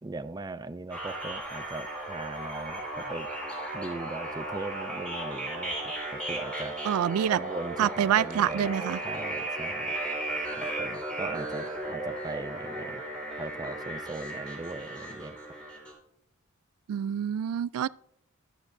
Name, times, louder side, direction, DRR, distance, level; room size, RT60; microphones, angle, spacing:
voice 1, 0.0-3.3 3.7-5.7 6.3-6.7 7.3-8.7 9.0-9.9 10.6-13.0 13.4-15.4, right 2 dB, 20° right, 0.4 m, -39 dB
sound 1, 0.9-15.9, right 1 dB, 5° left, 4.6 m, -35 dB
voice 2, 6.8-7.4 7.8-9.0 16.9-17.9, right 9 dB, 85° right, 0.3 m, -26 dB
13.0 x 12.0 x 2.6 m
head